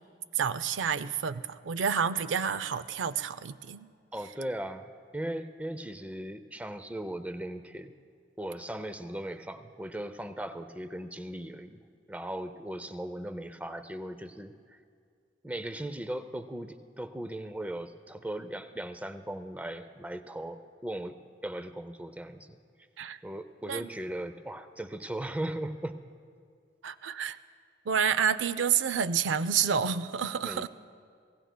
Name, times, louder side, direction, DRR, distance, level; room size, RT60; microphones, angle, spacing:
voice 1, 0.4-3.9 23.0-23.2 23.7-23.9 26.8-27.4 27.9-30.7, right 7 dB, 90° right, 14 dB, 0.4 m, -29 dB
voice 2, 4.1-7.9 8.4-11.8 12.1-14.8 15.4-22.6 23.2-26.0 30.4-30.7, right 1 dB, 10° right, 10 dB, 0.4 m, -38 dB
25.0 x 17.0 x 2.2 m, 2.2 s
head